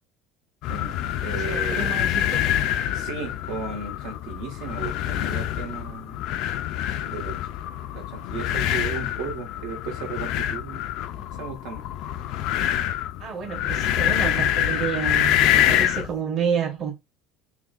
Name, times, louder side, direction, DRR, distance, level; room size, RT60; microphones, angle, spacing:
sound 1, 0.6-16.1, left 11 dB, 60° left, 0.3 m, -26 dB
voice 1, 0.6-2.0 2.9-6.3 7.1-7.4 7.9-10.9 11.4-11.8 15.7-15.8, right 5 dB, 70° right, 1.4 m, -35 dB
voice 2, 1.3-2.4 11.2-11.3 13.2-16.9, right 7 dB, 35° right, 1.2 m, -29 dB
5.8 x 2.3 x 2.4 m
cardioid pair, 155°, 0 cm